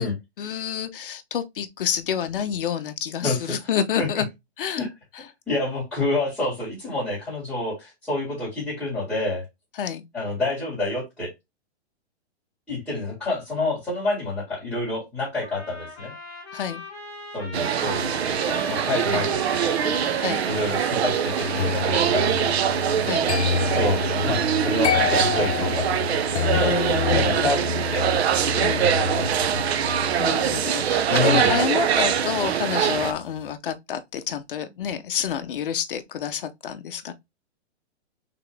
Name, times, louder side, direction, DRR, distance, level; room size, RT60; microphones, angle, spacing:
voice 1, 0.0-4.3 4.6-4.8 5.1-5.2 9.8-10.0 16.5-16.8 19.1-19.3 20.2-20.5 21.6-21.7 23.0-23.3 26.6-27.6 28.5-28.8 30.2-37.1, left 8 dB, 50° left, 0.7 m, -28 dB
voice 2, 5.2-9.4 10.1-11.3 12.7-16.1 17.3-19.7 20.4-22.5 23.7-27.6 27.9-28.1 28.8-29.6 31.1-31.6, left 2 dB, ahead, 2.0 m, -28 dB
sound 1, 15.4-23.2, left 3 dB, 30° left, 1.7 m, -39 dB
sound 2, 17.5-33.1, right 9 dB, 65° right, 0.6 m, -23 dB
sound 3, 21.6-32.5 32.8-33.2, left 7 dB, 90° left, 0.8 m, -29 dB
4.0 x 3.7 x 3.4 m
hypercardioid pair, 180°, 33 cm